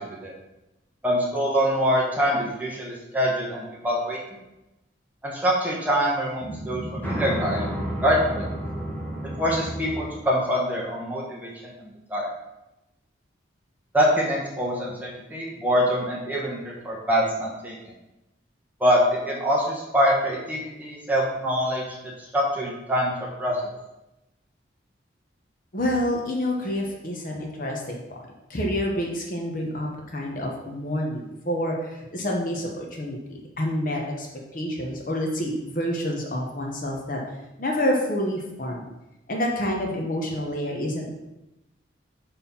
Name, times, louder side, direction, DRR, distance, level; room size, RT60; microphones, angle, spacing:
voice 1, 1.0-4.2 5.2-7.7 8.0-8.5 9.4-11.7 12.1-12.3 13.9-17.7 18.8-21.8 22.3-23.1 23.4-23.6, equal, 10° right, -5 dB, 1.3 m, -24 dB
sound 1, 6.4-10.1, right 1 dB, 10° left, 1.0 m, -31 dB
voice 2, 25.7-28.2 28.5-34.3 34.5-37.2 37.6-38.9 39.3-41.1, left 1 dB, 45° left, 0 dB, 1.0 m, -28 dB
5.4 x 4.4 x 5.5 m, 0.96 s
head